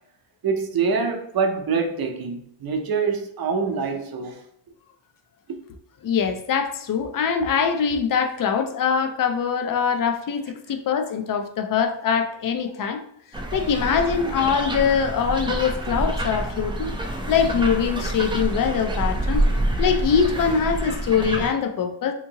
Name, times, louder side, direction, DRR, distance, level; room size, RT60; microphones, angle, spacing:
voice 1, 0.4-4.4, right 5 dB, 50° right, 0.7 m, -25 dB
voice 2, 6.0-13.0 13.5-16.9 17.3-19.4 19.8-22.1, left 6 dB, 45° left, 0.5 m, -23 dB
sound 1, 13.3-21.5, right 1 dB, 10° right, 0.3 m, -27 dB
3.5 x 2.9 x 2.8 m
wide cardioid pair, 125°, 47 cm